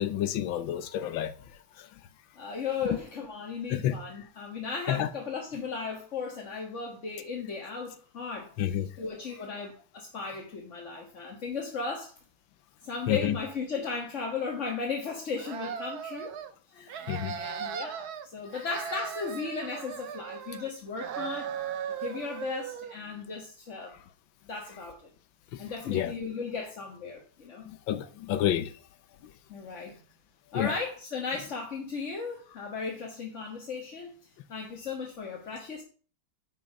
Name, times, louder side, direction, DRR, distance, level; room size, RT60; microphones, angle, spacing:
voice 1, 0.0-1.3 1.8-1.9 3.7-3.9 4.9-5.1 8.6-8.9 13.1-13.3 17.1-17.4 25.5-25.6 25.9-26.1 27.7-28.7 30.5-30.7, left 11 dB, 80° left, 1.6 m, -29 dB
voice 2, 2.4-8.5 9.0-12.1 12.8-16.4 16.7-17.1 17.4-21.5 22.0-24.0 24.4-25.0 25.6-27.7 29.5-29.9 30.5-34.2 34.5-35.8, left 5 dB, 40° left, 1.8 m, -36 dB
sound 1, 15.4-16.5 16.9-18.2 18.5-20.7 21.0-23.0, right 8 dB, 60° right, 1.3 m, -37 dB
10.5 x 6.1 x 5.3 m
omnidirectional pair, 2.1 m